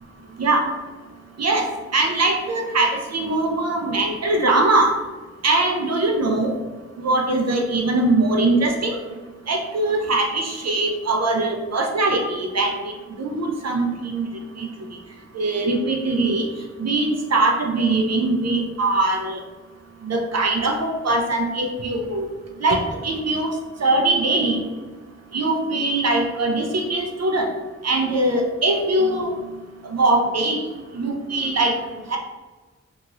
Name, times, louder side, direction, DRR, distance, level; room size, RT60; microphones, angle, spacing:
voice 1, 0.4-0.7 1.4-1.7 1.9-5.0 5.4-6.6 7.0-9.0 9.5-12.9 13.2-14.3 14.6-14.7 15.3-16.5 16.8-19.4 20.0-22.3 22.6-24.6 25.3-27.5 27.8-30.6 30.9-31.7 32.1-32.2, right 2 dB, 60° right, 2 dB, 0.5 m, -21 dB
2.8 x 2.8 x 2.5 m, 1.3 s
wide cardioid pair, 55°, 29 cm